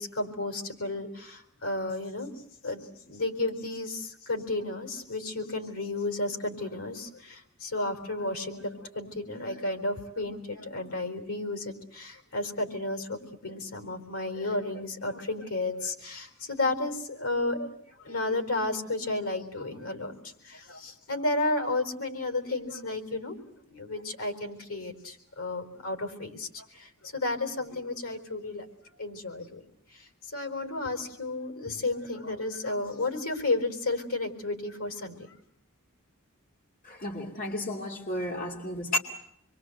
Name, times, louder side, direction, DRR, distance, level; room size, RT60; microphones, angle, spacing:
voice 1, 0.0-2.3 2.6-23.4 23.7-28.7 29.0-29.6 29.9-35.4, left 2 dB, 85° left, 4.5 m, -32 dB
voice 2, 36.8-39.0, left 1 dB, 40° left, 2.5 m, -32 dB
27.0 x 23.0 x 8.0 m
head